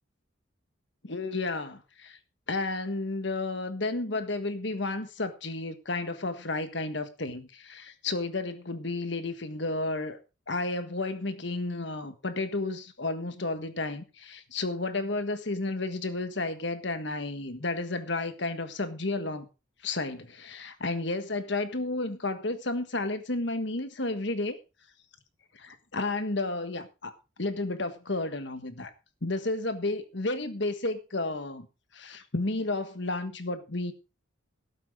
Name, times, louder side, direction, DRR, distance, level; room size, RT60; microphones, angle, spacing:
voice 1, 1.0-2.2 2.5-10.2 10.5-19.5 19.8-24.6 25.5-28.9 29.2-31.7 31.9-33.9, left 2 dB, 60° left, 1.5 m, -32 dB
13.0 x 12.5 x 3.7 m
head